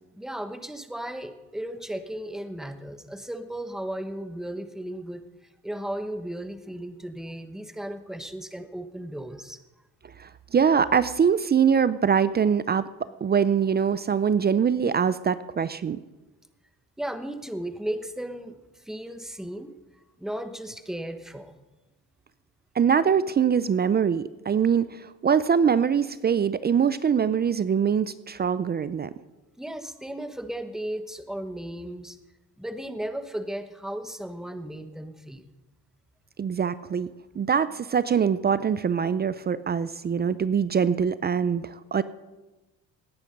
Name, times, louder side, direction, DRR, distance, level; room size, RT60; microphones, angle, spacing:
voice 1, 0.1-5.2 5.6-9.6 17.0-21.6 29.6-32.2 32.6-35.5, right 1 dB, ahead, 9 dB, 1.0 m, -35 dB
voice 2, 10.2-12.9 13.2-16.0 22.8-29.1 36.4-37.1 37.4-42.0, right 7 dB, 30° right, 16 dB, 0.5 m, -23 dB
18.0 x 9.7 x 5.3 m, 1.1 s
cardioid pair, 105°, 34 cm